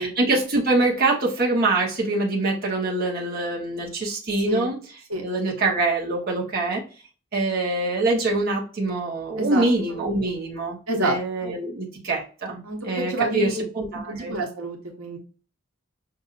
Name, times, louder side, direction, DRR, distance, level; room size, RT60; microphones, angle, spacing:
voice 1, 0.0-4.8 5.2-6.8 7.3-14.4, right 2 dB, 45° right, -3 dB, 1.1 m, -24 dB
voice 2, 9.4-10.0 10.9-11.2 12.6-13.6 14.1-15.2, right 2 dB, 85° right, 0 dB, 1.1 m, -28 dB
5.6 x 2.6 x 2.4 m, 0.37 s
head